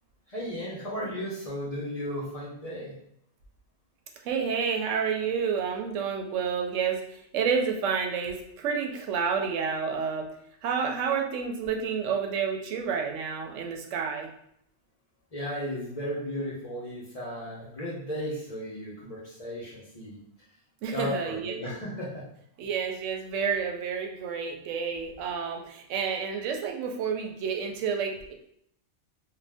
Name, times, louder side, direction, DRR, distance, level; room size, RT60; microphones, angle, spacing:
voice 1, 0.3-2.9 15.3-20.2 20.9-22.2, equal, 35° left, -6 dB, 0.7 m, -35 dB
voice 2, 4.2-10.3 10.6-14.3 20.8-21.6 22.6-28.3, right 6 dB, 85° right, 3 dB, 0.9 m, -29 dB
2.6 x 2.3 x 3.3 m, 0.71 s
omnidirectional pair, 1.2 m